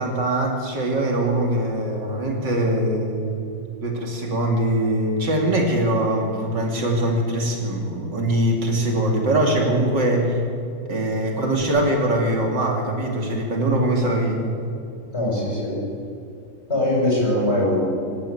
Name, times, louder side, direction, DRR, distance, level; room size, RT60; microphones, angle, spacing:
voice 1, 0.0-3.4 3.8-10.4 10.9-14.5, right 1 dB, 70° right, 1 dB, 3.5 m, -22 dB
voice 2, 15.1-15.8 16.7-17.8, left 1 dB, 35° left, -3 dB, 7.8 m, -21 dB
24.5 x 13.0 x 8.8 m, 2.6 s
omnidirectional pair, 2.0 m